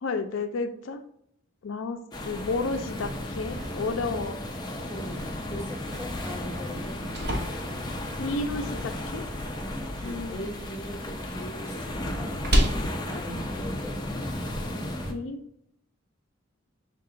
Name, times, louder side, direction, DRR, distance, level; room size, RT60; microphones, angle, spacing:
voice 1, 0.0-1.0 1.6-2.0 2.2-4.4 8.2-9.2 10.0-10.5 15.1-15.4, left 3 dB, 80° left, 8 dB, 0.4 m, -31 dB
sound 1, 2.1-15.1, left 1 dB, 20° left, 0.5 m, -34 dB
sound 2, 3.4-10.1, equal, 40° right, 1.5 m, -50 dB
voice 2, 4.8-7.2 9.6-12.4 13.1-14.2, equal, 15° right, -3 dB, 1.1 m, -40 dB
sound 3, 6.7-14.7, equal, 55° right, 0.9 m, -33 dB
5.7 x 2.3 x 3.7 m, 0.72 s
head